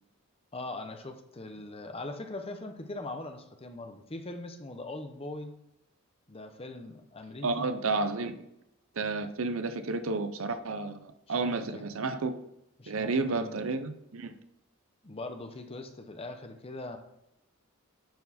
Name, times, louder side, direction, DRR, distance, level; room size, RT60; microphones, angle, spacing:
voice 1, 0.5-5.5 6.3-7.7 11.4-11.9 12.8-13.6 15.0-17.0, left 2 dB, 25° left, 6 dB, 0.8 m, -41 dB
voice 2, 7.4-8.4 9.0-12.3 12.9-14.3, right 3 dB, 65° right, 10 dB, 0.7 m, -31 dB
10.5 x 4.6 x 4.2 m, 0.84 s
head